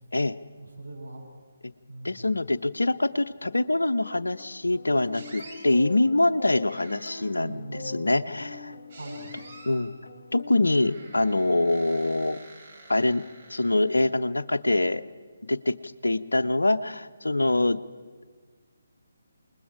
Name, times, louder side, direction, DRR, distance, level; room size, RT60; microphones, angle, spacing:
voice 1, 0.6-1.3 1.9-2.4 7.3-8.2 8.9-9.3, right 2 dB, 80° right, -1 dB, 7.2 m, -41 dB
voice 2, 2.0-8.7 9.7-9.9 10.3-12.4 12.9-13.2 13.5-15.0 15.5-15.8 16.0-17.8, left 2 dB, 70° left, 12 dB, 0.7 m, -24 dB
sound 1, 3.9-11.4, left 4 dB, 50° left, 2.5 m, -43 dB
sound 2, 5.1-5.7 6.7-7.4 8.9-9.9 10.7-14.1, right 3 dB, 35° right, 4.3 m, -48 dB
28.5 x 20.5 x 4.9 m, 1.5 s
figure-of-eight pair, 145°, 0 cm